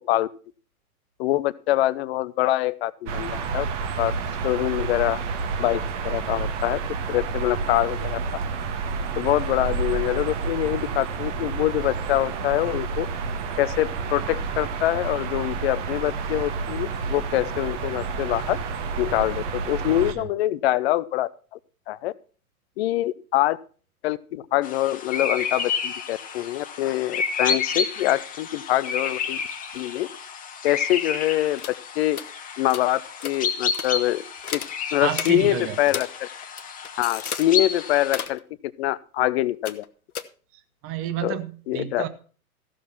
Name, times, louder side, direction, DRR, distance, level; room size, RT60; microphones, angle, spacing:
voice 1, 1.2-3.7 4.0-4.1 4.4-5.2 5.6-6.8 7.1-8.2 9.2-13.1 13.6-18.6 19.0-21.3 21.9-22.1 22.8-23.6 24.0-29.4 29.7-30.1 30.6-31.6 32.0-32.2 32.6-34.2 34.5-34.6 34.9-36.3 37.0-38.4 38.8-39.8 41.2-41.4 41.7-42.0, left 15 dB, 45° left, 17 dB, 0.7 m, -24 dB
sound 1, 3.1-20.1, right 5 dB, 55° right, 1.6 m, -29 dB
voice 2, 19.8-20.3 35.0-35.8 40.8-42.1, right 12 dB, 30° right, 11 dB, 1.2 m, -31 dB
sound 2, 24.6-38.3, left 6 dB, 20° left, 1.3 m, -30 dB
sound 3, 31.6-31.8 32.1-32.3 32.7-32.9 33.2-33.4 33.7-33.9 34.4-34.7 35.1-35.3 35.9-36.1 36.4-37.5 38.0-38.4 39.6-39.9 40.1-40.2, left 8 dB, 75° left, 1.2 m, -32 dB
15.0 x 6.4 x 5.8 m, 0.41 s
figure-of-eight pair, 95°, 44 cm